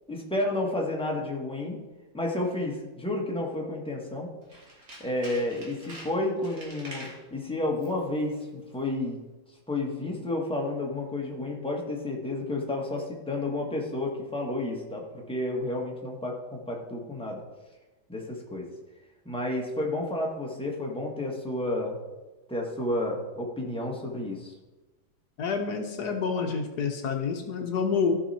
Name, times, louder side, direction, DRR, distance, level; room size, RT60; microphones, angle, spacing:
voice 1, 0.1-1.8 2.1-4.3 5.0-9.2 9.7-17.4 18.1-18.7 19.2-22.0 22.5-24.5, left 2 dB, 5° left, -2 dB, 1.3 m, -31 dB
Tools, 4.4-7.2 7.7-8.1 8.3-8.4, right 1 dB, 50° right, 2.6 m, -45 dB
voice 2, 25.4-28.2, left 5 dB, 65° left, 4 dB, 1.4 m, -28 dB
14.0 x 5.7 x 4.3 m, 1.2 s
omnidirectional pair, 2.0 m